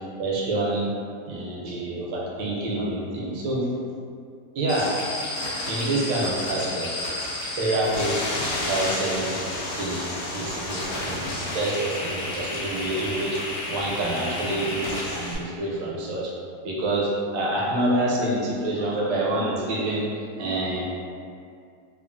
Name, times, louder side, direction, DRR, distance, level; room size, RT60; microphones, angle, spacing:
voice 1, 0.2-0.9 1.3-3.7 4.5-5.0 5.7-6.9 7.6-9.4 9.8-10.0 10.3-13.4 13.7-16.3 16.6-20.8, right 1 dB, 80° right, -4 dB, 1.3 m, -27 dB
sound 1, 4.7-15.3, left 1 dB, 75° left, 0.8 m, -31 dB
3.1 x 2.3 x 2.4 m, 2.3 s
omnidirectional pair, 2.1 m